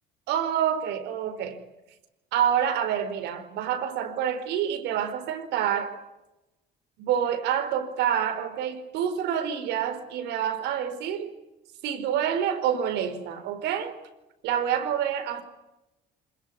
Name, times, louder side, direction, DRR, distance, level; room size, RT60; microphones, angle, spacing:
voice 1, 0.3-1.6 2.3-6.0 7.0-11.3 11.8-14.0 14.4-15.4, right 9 dB, 85° right, 4.6 m, -27 dB
27.0 x 21.5 x 9.8 m
cardioid pair, 110°, 17 cm